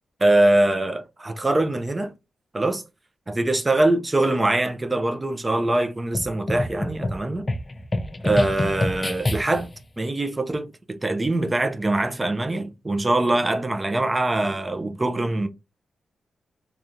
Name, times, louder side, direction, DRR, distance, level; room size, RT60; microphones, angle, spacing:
voice 1, 0.2-2.1 2.5-2.8 3.3-7.5 8.2-9.7 10.0-15.5, right 2 dB, 25° right, 0.6 m, -23 dB
sound 1, 6.1-9.8, left 1 dB, 35° left, 0.5 m, -27 dB
3.6 x 2.3 x 2.7 m
cardioid pair, 60°, 0 cm